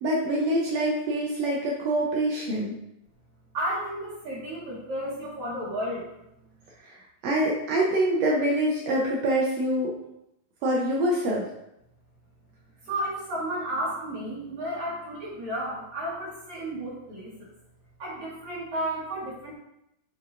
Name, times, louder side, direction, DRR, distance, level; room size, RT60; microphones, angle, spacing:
voice 1, 0.0-2.8 7.2-9.9 10.6-11.5, right 1 dB, 90° right, -3 dB, 1.4 m, -25 dB
voice 2, 3.5-6.1 12.8-17.5 18.0-19.5, right 1 dB, 60° right, -9 dB, 2.4 m, -32 dB
8.1 x 4.7 x 2.5 m, 0.84 s
omnidirectional pair, 4.1 m